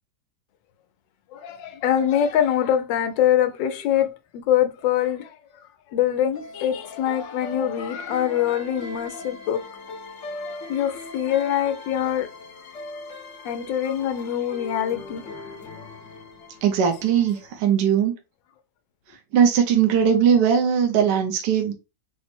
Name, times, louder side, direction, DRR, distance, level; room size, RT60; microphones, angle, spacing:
voice 1, 1.3-5.3 5.9-9.6 10.7-12.3 13.4-15.2 15.8-15.9, left 10 dB, 85° left, 1.3 m, -24 dB
sound 1, 6.3-17.6, left 2 dB, 50° left, 1.1 m, -40 dB
voice 2, 16.6-18.1 19.3-21.7, right 8 dB, 70° right, 1.3 m, -19 dB
4.3 x 2.0 x 4.2 m
omnidirectional pair, 1.9 m